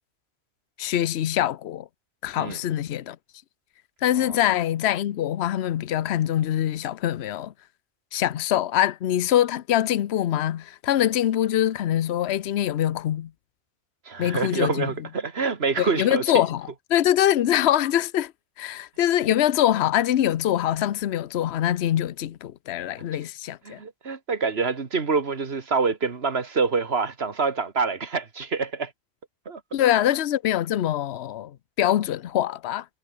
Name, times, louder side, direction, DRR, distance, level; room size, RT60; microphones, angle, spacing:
voice 1, 0.8-1.9 2.2-3.2 4.0-7.5 8.1-13.3 14.2-15.1 15.8-18.3 18.6-23.8 29.7-32.9, left 12 dB, 70° left, 1.0 m, -24 dB
voice 2, 14.1-16.2 23.7-28.9 29.5-29.6, right 4 dB, 65° right, 2.1 m, -26 dB
omnidirectional pair, 1.2 m